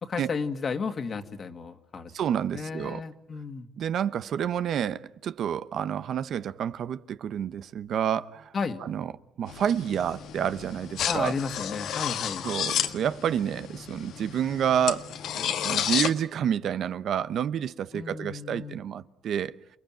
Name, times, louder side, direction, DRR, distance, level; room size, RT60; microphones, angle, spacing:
voice 1, 0.0-2.1 2.5-3.7 8.5-8.8 11.0-12.5 17.9-18.8, left 5 dB, 45° left, 2.1 m, -33 dB
voice 2, 2.1-3.0 3.8-8.5 8.8-9.1 9.4-11.3 12.4-15.1 15.3-19.5, right 9 dB, 70° right, 0.9 m, -29 dB
sound 1, 9.5-16.1, left 9 dB, 80° left, 1.6 m, -32 dB
29.0 x 20.5 x 9.1 m
cardioid pair, 90°, 0 cm